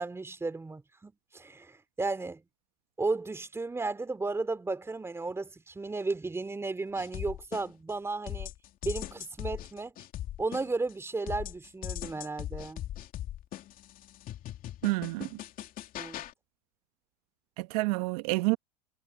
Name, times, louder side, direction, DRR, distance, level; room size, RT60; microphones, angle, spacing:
voice 1, 0.0-2.4 3.0-8.5 8.8-9.9 10.4-12.8 16.0-16.2, right 3 dB, 10° right, 2.7 m, -34 dB
sound 1, 7.0-7.9 8.3-10.9 11.3-16.3, left 12 dB, 45° left, 2.9 m, -40 dB
voice 2, 14.8-15.4 17.6-18.6, right 24 dB, 65° right, 1.3 m, -29 dB
hypercardioid pair, 95°, 21 cm